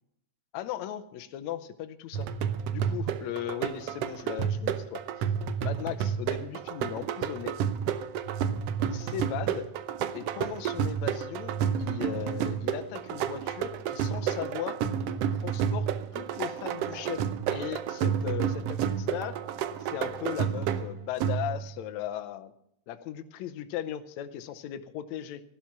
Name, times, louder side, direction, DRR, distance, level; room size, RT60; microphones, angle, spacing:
voice 1, 0.5-2.3 2.7-5.3 5.6-7.6 8.8-9.7 10.1-14.8 15.3-17.2 17.5-19.4 19.8-22.5 22.9-25.4, left 11 dB, 80° left, 10 dB, 2.0 m, -37 dB
sound 1, 2.1-21.8, right 8 dB, 70° right, 1.5 m, -30 dB
15.5 x 12.0 x 5.9 m, 0.73 s
omnidirectional pair, 3.4 m